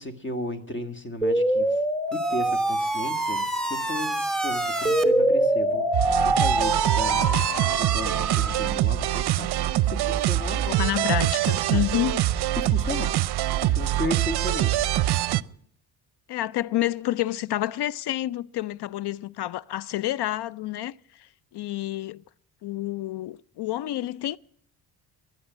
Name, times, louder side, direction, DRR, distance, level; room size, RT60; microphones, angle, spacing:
voice 1, 0.0-1.8 2.1-5.9 6.2-7.5 7.8-9.5 9.9-10.6 11.7-11.8 12.6-13.2 13.6-14.9, left 1 dB, 25° left, 1.7 m, -34 dB
sound 1, 1.2-8.7, right 1 dB, ahead, 1.1 m, -24 dB
sound 2, 5.9-15.4, right 13 dB, 65° right, 0.6 m, -24 dB
voice 2, 10.7-12.2 16.3-22.2 22.6-24.4, left 14 dB, 65° left, 0.6 m, -29 dB
13.0 x 10.0 x 9.4 m
cardioid pair, 90°, 44 cm